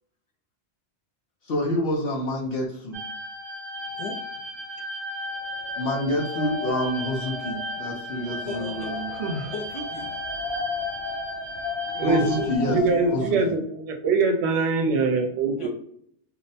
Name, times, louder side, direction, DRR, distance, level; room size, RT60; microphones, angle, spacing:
voice 1, 1.5-3.0 5.8-9.1 12.1-12.8 13.1-13.5, equal, 60° left, 0 dB, 0.8 m, -27 dB
sound 1, 2.9-12.6, left 1 dB, 35° right, 0.5 m, -35 dB
Wind, 5.6-13.5, left 5 dB, 85° left, 1.0 m, -35 dB
voice 2, 8.5-9.0 9.5-10.1 12.2-13.1 15.6-15.7, left 3 dB, 45° left, 0 dB, 0.4 m, -35 dB
voice 3, 9.1-9.5 11.9-12.2 12.6-15.7, right 4 dB, 70° right, 3 dB, 0.9 m, -23 dB
2.7 x 2.1 x 2.6 m, 0.67 s
omnidirectional pair, 1.2 m